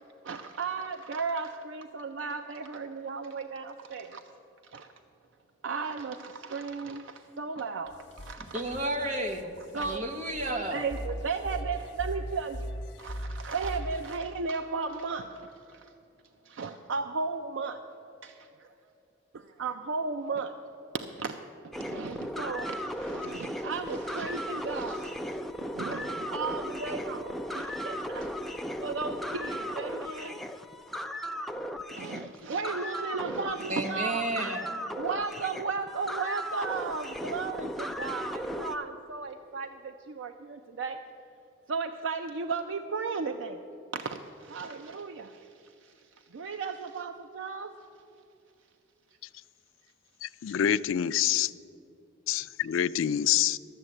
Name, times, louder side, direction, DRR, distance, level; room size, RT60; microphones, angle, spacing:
voice 1, 0.2-4.2 4.7-4.9 5.6-8.8 9.7-10.0 10.5-12.7 13.0-15.9 16.5-17.8 18.2-18.7 19.3-20.5 20.9-25.4 25.7-28.3 28.8-30.4 31.9-34.3 34.9-41.0 41.7-43.6 43.9-45.9 46.3-47.8, right 4 dB, 80° right, 7 dB, 0.5 m, -35 dB
sound 1, 7.9-14.2, equal, 60° left, 0.8 m, -40 dB
voice 2, 8.5-10.8 33.7-34.7, right 1 dB, 40° right, 4 dB, 1.1 m, -32 dB
sound 2, 21.7-38.7, equal, ahead, 0.3 m, -36 dB
voice 3, 50.2-51.5 52.3-53.6, left 10 dB, 90° left, 15 dB, 0.3 m, -26 dB
12.5 x 7.2 x 7.7 m, 2.8 s
head